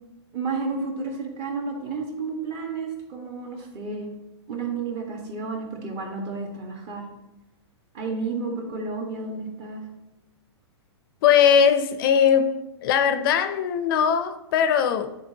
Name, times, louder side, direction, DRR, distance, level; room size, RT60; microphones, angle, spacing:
voice 1, 0.3-4.1 4.5-7.1 7.9-9.9, right 4 dB, 35° right, 1.5 m, -31 dB
voice 2, 11.2-15.1, left 8 dB, 50° left, 0.5 m, -20 dB
9.5 x 4.0 x 2.8 m
hypercardioid pair, 135°, 15 cm